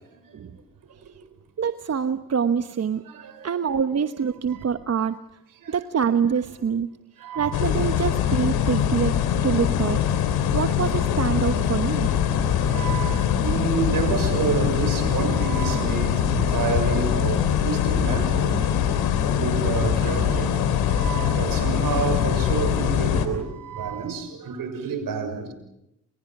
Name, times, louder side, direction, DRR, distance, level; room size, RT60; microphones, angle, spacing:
voice 1, 1.6-3.0 3.4-5.2 5.7-6.9 7.3-9.1 9.4-10.0 10.5-12.1, right 7 dB, 45° right, 1.1 m, -25 dB
voice 2, 3.1-3.5 4.5-4.6 5.6-5.8 7.2-7.6 12.6-18.7 19.2-20.5 20.8-25.5, right 5 dB, 65° right, 6.6 m, -29 dB
sound 1, 7.5-23.3, left 9 dB, 85° left, 3.1 m, -23 dB
30.0 x 27.0 x 6.0 m
supercardioid pair, 55°, 36 cm